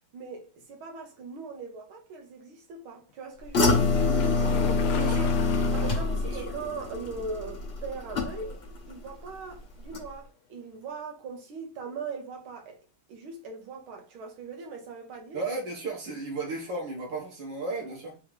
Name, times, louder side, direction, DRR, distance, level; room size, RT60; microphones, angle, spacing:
voice 1, 0.1-3.9 5.7-12.8 13.1-15.4, right 4 dB, 80° right, 1.9 m, -40 dB
sound 1, 3.5-8.8 9.1-9.5 9.9-10.0, left 3 dB, 40° left, 1.0 m, -26 dB
sound 2, 3.9-6.1 6.5-6.6 7.0-7.1 10.9-11.0, left 8 dB, 90° left, 1.5 m, -36 dB
voice 2, 4.9-5.4 6.3-6.4 15.3-18.2, right 3 dB, 60° right, 2.0 m, -34 dB
4.6 x 2.7 x 3.5 m
omnidirectional pair, 2.2 m